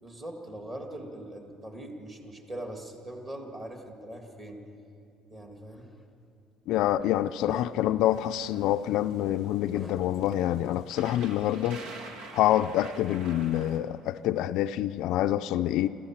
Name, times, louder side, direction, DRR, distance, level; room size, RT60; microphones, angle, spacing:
voice 1, 0.0-4.6 5.3-5.9, right 1 dB, 20° right, 2.0 m, -41 dB
sound 1, 5.7-5.9 6.8-7.2 7.4-8.0 8.4-8.6 9.7-10.8, left 1 dB, ahead, 1.0 m, -46 dB
voice 2, 6.7-11.8 12.3-15.9, left 13 dB, 55° left, 0.4 m, -26 dB
sound 2, 8.0-13.8, right 3 dB, 80° right, 2.0 m, -47 dB
26.0 x 14.0 x 7.4 m
cardioid pair, 180°, 0 cm